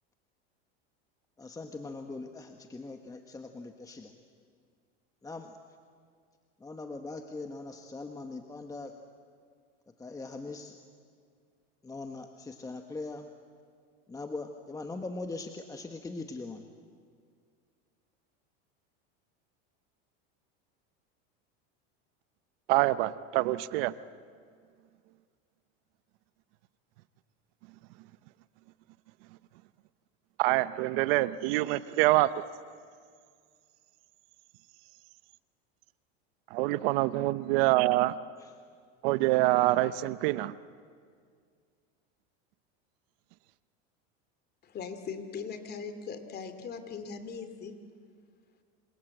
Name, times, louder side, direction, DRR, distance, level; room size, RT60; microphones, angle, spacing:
voice 1, 1.4-4.1 5.2-5.5 6.6-8.9 10.0-10.7 11.8-13.3 14.1-16.6 38.4-38.5, left 3 dB, 10° left, 5 dB, 1.3 m, -41 dB
voice 2, 22.7-23.9 30.4-32.3 36.5-38.2 39.0-40.5, right 17 dB, 65° right, 15 dB, 0.9 m, -25 dB
voice 3, 44.6-47.8, left 5 dB, 30° left, 9 dB, 2.7 m, -40 dB
27.0 x 26.5 x 8.0 m, 2.1 s
supercardioid pair, 130°, 31 cm